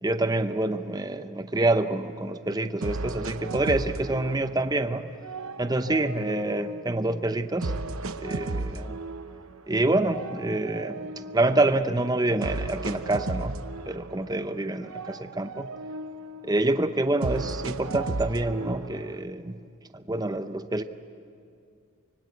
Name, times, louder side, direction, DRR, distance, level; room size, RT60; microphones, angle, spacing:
voice 1, 0.0-5.1 5.6-9.0 9.7-13.6 13.9-15.7 16.4-19.6 19.9-20.8, right 2 dB, 20° right, 10 dB, 0.7 m, -27 dB
sound 1, 2.1-2.2 2.8-4.8 5.2-7.0 7.6-9.6 10.0-11.8 12.4-14.6 14.8-16.6 17.2-19.2, right 3 dB, 75° right, 0.9 m, -35 dB
25.0 x 24.0 x 8.3 m, 2.4 s
head